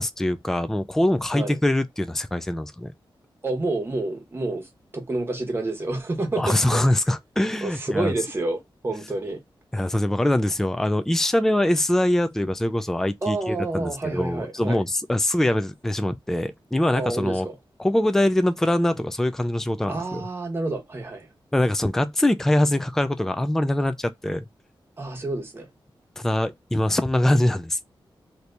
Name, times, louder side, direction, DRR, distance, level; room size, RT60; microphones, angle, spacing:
voice 1, 0.0-2.9 6.4-8.1 9.7-17.5 17.8-20.3 21.5-24.4 26.2-27.8, left 1 dB, 5° left, 0.3 m, -23 dB
voice 2, 3.4-6.8 7.6-9.4 13.2-14.8 16.9-17.6 19.9-21.3 25.0-25.7, right 2 dB, 25° right, 1.0 m, -29 dB
2.9 x 2.6 x 3.2 m
wide cardioid pair, 155°, 9 cm